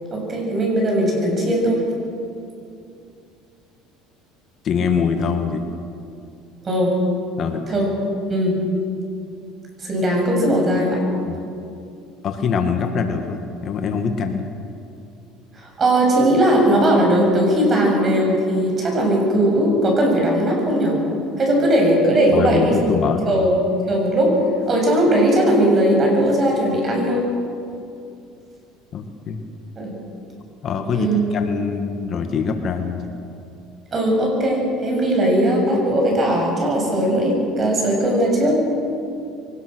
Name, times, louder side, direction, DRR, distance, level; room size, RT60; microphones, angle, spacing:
voice 1, 0.1-1.8 6.6-6.9 7.7-7.9 8.3-8.6 9.8-11.0 15.6-21.0 21.4-23.0 23.3-24.4 24.7-27.3 29.8-29.9 30.9-31.2 33.9-38.7, right 1 dB, 30° right, 0 dB, 7.4 m, -18 dB
voice 2, 4.6-5.6 7.4-7.7 11.3-11.4 12.2-14.5 22.3-23.3 28.9-29.4 30.6-33.1, left 6 dB, 45° left, 5 dB, 1.7 m, -24 dB
23.5 x 19.0 x 6.3 m, 2.6 s
cardioid pair, 115°, 0 cm